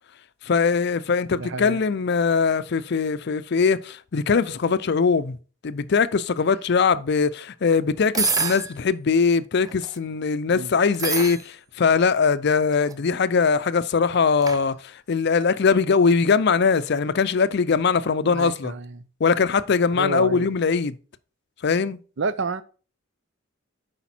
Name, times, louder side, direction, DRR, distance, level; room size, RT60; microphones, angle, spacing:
voice 1, 0.4-5.4 5.6-18.7 19.2-21.0 21.6-22.0, left 5 dB, 55° left, 0.5 m, -21 dB
voice 2, 1.4-1.8 10.5-10.7 18.2-19.0 20.0-20.5 22.2-22.6, right 4 dB, 60° right, 0.6 m, -29 dB
sound 1, 8.1-8.7 9.6-10.0 10.9-11.4 12.6-12.9 14.4-14.6, right 4 dB, 15° right, 0.4 m, -26 dB
8.3 x 5.1 x 4.4 m
head